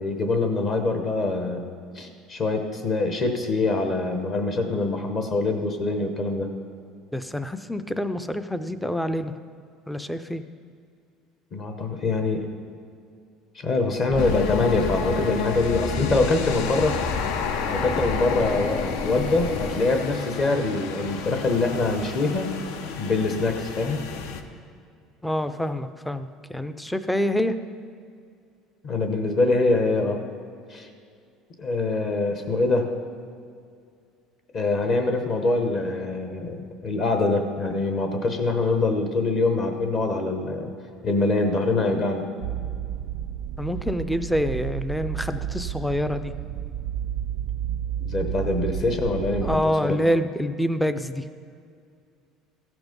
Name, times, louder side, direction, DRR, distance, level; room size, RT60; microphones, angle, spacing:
voice 1, 0.0-1.6 1.9-6.5 11.5-12.5 13.5-17.0 17.7-22.5 23.0-24.0 28.8-30.2 30.7-30.9 31.6-32.9 34.5-40.7 41.0-42.3 48.0-49.6, left 3 dB, 35° left, 5 dB, 0.8 m, -24 dB
voice 2, 7.1-9.3 9.9-10.4 25.2-27.6 43.6-46.3 49.4-51.2, equal, 5° left, 11 dB, 0.4 m, -26 dB
sound 1, 14.1-19.7, left 2 dB, 65° left, 1.5 m, -32 dB
sound 2, 14.2-24.4, left 6 dB, 85° left, 0.7 m, -31 dB
sound 3, 42.4-49.6, right 10 dB, 75° right, 0.4 m, -31 dB
15.0 x 6.0 x 5.2 m, 2.3 s
cardioid pair, 160°, 0 cm